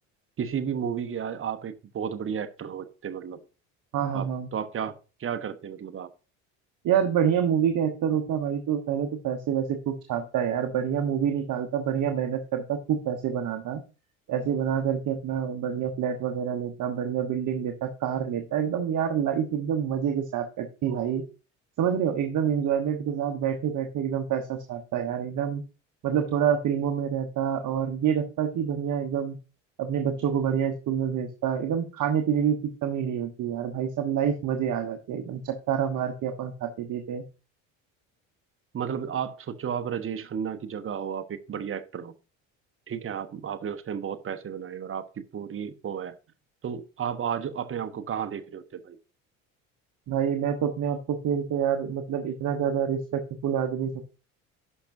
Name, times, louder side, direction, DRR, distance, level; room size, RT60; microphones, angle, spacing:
voice 1, 0.4-3.4 4.1-6.1 38.7-42.1 42.9-46.2 46.6-49.0, right 8 dB, 35° right, 1.1 m, -33 dB
voice 2, 3.9-4.5 6.8-13.8 14.3-21.3 21.8-25.6 26.0-29.4 29.8-37.2 50.1-54.0, right 8 dB, 55° right, 1.2 m, -27 dB
11.5 x 5.9 x 2.7 m
supercardioid pair, 75°, 37 cm